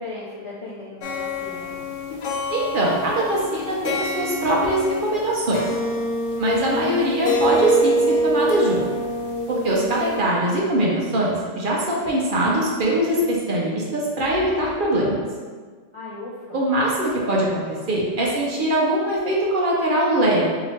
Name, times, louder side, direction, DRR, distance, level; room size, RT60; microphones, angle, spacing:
voice 1, 0.0-1.8 15.9-16.6, left 2 dB, 45° left, -8 dB, 0.4 m, -36 dB
sound 1, 1.0-5.3 5.5-10.2, equal, 85° left, 0.9 m, -25 dB
voice 2, 2.5-5.7 6.4-8.8 9.5-15.2 16.5-20.5, right 1 dB, 55° right, -4 dB, 0.8 m, -22 dB
2.9 x 2.8 x 4.2 m, 1.5 s
omnidirectional pair, 1.2 m